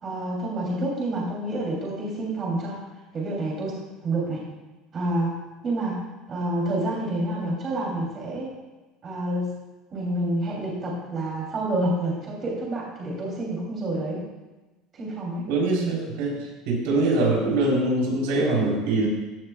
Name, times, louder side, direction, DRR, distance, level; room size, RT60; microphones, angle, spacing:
voice 1, 0.0-2.8 3.1-4.4 4.9-8.5 9.0-9.5 9.9-14.2 14.9-15.4, right 1 dB, 25° right, -4 dB, 3.0 m, -28 dB
voice 2, 15.5-19.1, right 2 dB, 85° right, -2 dB, 3.9 m, -23 dB
15.0 x 11.5 x 2.3 m, 1.1 s
cardioid pair, 170°, 0 cm